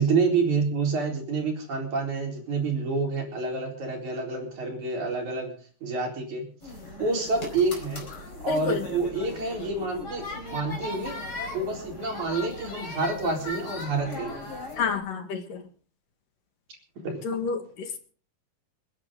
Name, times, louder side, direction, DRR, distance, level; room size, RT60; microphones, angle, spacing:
voice 1, 0.0-5.5 5.8-6.5 7.0-8.1 8.4-10.2 10.5-11.2 11.5-14.4 17.0-17.2, right 3 dB, 50° right, 1 dB, 5.3 m, -28 dB
sound 1, 6.6-15.0, left 2 dB, 25° left, 5.0 m, -38 dB
voice 2, 8.5-8.9 14.8-15.6 17.2-18.0, left 5 dB, 65° left, 5 dB, 3.3 m, -29 dB
28.0 x 11.0 x 3.8 m, 0.42 s
omnidirectional pair, 4.3 m